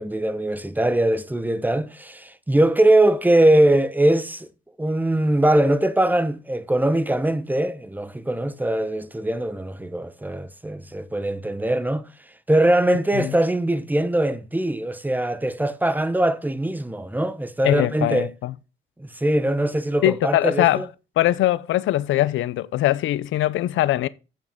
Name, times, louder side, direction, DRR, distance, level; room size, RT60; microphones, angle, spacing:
voice 1, 0.0-4.5 4.8-12.1 12.5-18.3 19.0-20.9, right 1 dB, 10° right, 0.7 m, -21 dB
voice 2, 17.6-18.5 20.0-20.8 21.2-24.1, left 14 dB, 75° left, 0.5 m, -21 dB
8.3 x 7.4 x 3.6 m
cardioid pair, 90°, 20 cm